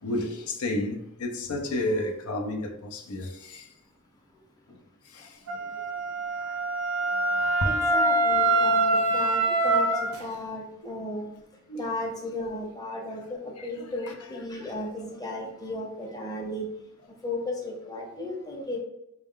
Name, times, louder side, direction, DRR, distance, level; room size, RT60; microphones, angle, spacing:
voice 1, 0.0-3.7 5.1-5.6 6.3-6.8 7.1-7.7 11.7-11.8 13.6-13.7, left 1 dB, 85° left, 0.6 m, -32 dB
Wind instrument woodwind instrument, 5.5-10.2, right 2 dB, 80° right, 0.6 m, -24 dB
voice 2, 7.6-9.9 10.2-11.2 11.7-16.7 17.2-18.8, left 1 dB, 20° left, 0.7 m, -35 dB
4.2 x 2.3 x 3.6 m
head